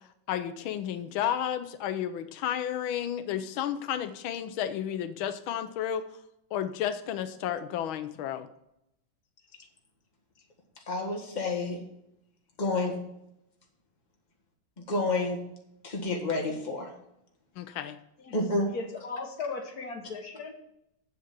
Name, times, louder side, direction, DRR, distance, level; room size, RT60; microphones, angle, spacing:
voice 1, 0.3-6.0 6.5-8.5 17.6-18.0, left 10 dB, 90° left, 10 dB, 1.5 m, -32 dB
voice 2, 10.9-11.8 12.6-13.0 14.8-15.4 15.8-16.9 18.3-18.7, left 2 dB, 25° left, 1 dB, 1.7 m, -29 dB
voice 3, 18.7-20.5, left 4 dB, 50° left, 4 dB, 1.8 m, -37 dB
8.0 x 7.4 x 5.9 m, 0.81 s
omnidirectional pair, 2.2 m